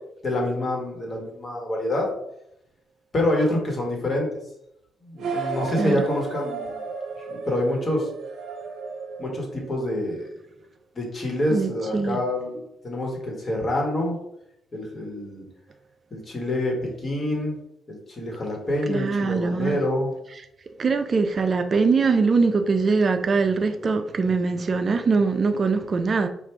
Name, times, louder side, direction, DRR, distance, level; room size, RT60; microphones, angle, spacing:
voice 1, 0.2-2.1 3.1-4.3 5.1-6.8 7.3-8.1 9.2-10.3 10.9-14.2 14.7-15.4 16.1-17.5 17.9-20.1, left 1 dB, 35° left, 1.3 m, -26 dB
sound 1, 5.2-10.0, right 4 dB, 70° right, 0.7 m, -34 dB
voice 2, 11.5-12.2 18.9-19.8 20.8-26.3, right 4 dB, 40° right, 0.3 m, -22 dB
4.4 x 2.4 x 3.3 m
cardioid pair, 90°, 0 cm